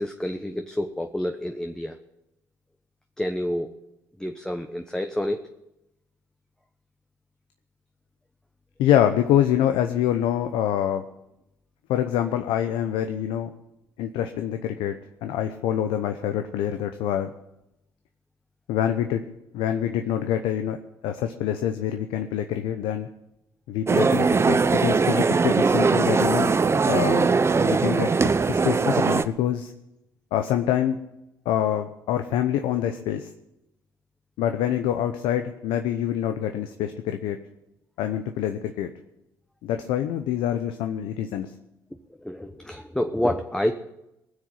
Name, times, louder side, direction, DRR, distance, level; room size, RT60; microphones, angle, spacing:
voice 1, 0.0-1.9 3.2-3.7 4.2-5.4 42.2-43.8, left 1 dB, 5° left, 5 dB, 1.0 m, -28 dB
voice 2, 8.8-11.0 11.9-13.5 14.0-15.0 15.2-17.3 18.7-19.2 19.5-20.8 21.0-23.1 23.7-26.6 26.9-27.3 27.6-29.7 30.3-31.0 31.4-33.3 34.4-37.4 38.0-38.9 39.6-41.5, left 10 dB, 75° left, 7 dB, 0.8 m, -25 dB
sound 1, 23.9-29.2, right 4 dB, 30° right, 0.8 m, -20 dB
19.5 x 6.5 x 7.6 m, 0.89 s
hypercardioid pair, 60°, 9 cm